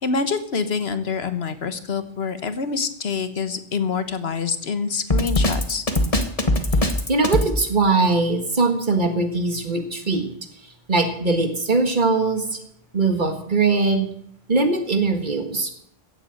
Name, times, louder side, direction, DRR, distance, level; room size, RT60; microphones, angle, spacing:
voice 1, 0.0-5.8, left 5 dB, 85° left, 11 dB, 1.4 m, -26 dB
Drum kit, 5.1-7.5, left 1 dB, 35° left, 1.4 m, -20 dB
voice 2, 7.1-10.3 10.9-12.6 12.9-14.1 14.5-15.7, right 3 dB, 50° right, 6 dB, 2.0 m, -21 dB
15.5 x 8.1 x 7.8 m, 0.68 s
omnidirectional pair, 1.0 m